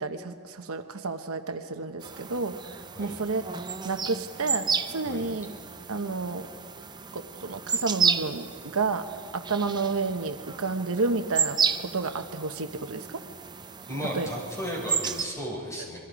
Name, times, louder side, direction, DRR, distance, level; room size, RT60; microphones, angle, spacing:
voice 1, 0.0-3.5 3.8-5.5 5.9-6.5 7.1-13.2 14.1-14.3, right 3 dB, 65° right, 7 dB, 1.0 m, -31 dB
sound 1, 2.0-15.2, right 6 dB, 20° right, 0.5 m, -32 dB
voice 2, 13.9-16.0, equal, 15° left, -3 dB, 6.3 m, -34 dB
28.0 x 22.5 x 5.1 m, 2.3 s
head